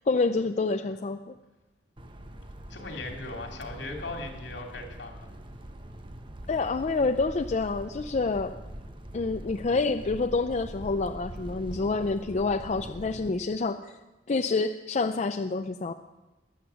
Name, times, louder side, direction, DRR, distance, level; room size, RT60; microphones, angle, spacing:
voice 1, 0.1-1.4 6.5-8.6 9.1-14.0 14.3-15.9, left 3 dB, 40° left, 8 dB, 0.5 m, -28 dB
sound 1, 2.0-13.3, right 1 dB, 30° right, 1.0 m, -43 dB
voice 2, 2.7-5.3, left 2 dB, 70° left, 2 dB, 2.8 m, -38 dB
22.0 x 8.7 x 6.9 m, 1.1 s
head